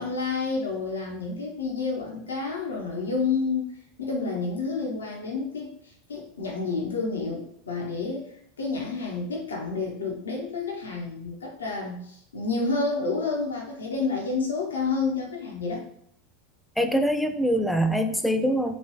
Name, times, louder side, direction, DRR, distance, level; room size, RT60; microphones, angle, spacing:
voice 1, 0.0-3.7 4.0-8.3 8.6-15.8, left 4 dB, 75° left, -1 dB, 0.6 m, -29 dB
voice 2, 16.8-18.7, equal, ahead, 6 dB, 0.3 m, -24 dB
3.0 x 2.6 x 3.0 m, 0.67 s
figure-of-eight pair, 80°, 0 cm